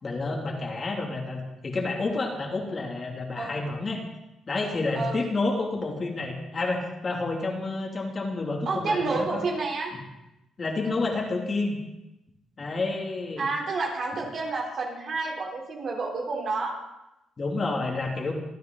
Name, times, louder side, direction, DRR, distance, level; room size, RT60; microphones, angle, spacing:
voice 1, 0.0-4.0 4.5-9.4 10.6-11.8 12.6-13.5 17.4-18.3, left 3 dB, 35° left, 0 dB, 3.0 m, -29 dB
voice 2, 8.7-9.9 13.4-16.8, right 3 dB, 55° right, 0 dB, 3.7 m, -29 dB
25.5 x 9.3 x 4.1 m, 0.93 s
cardioid pair, 90°, 0 cm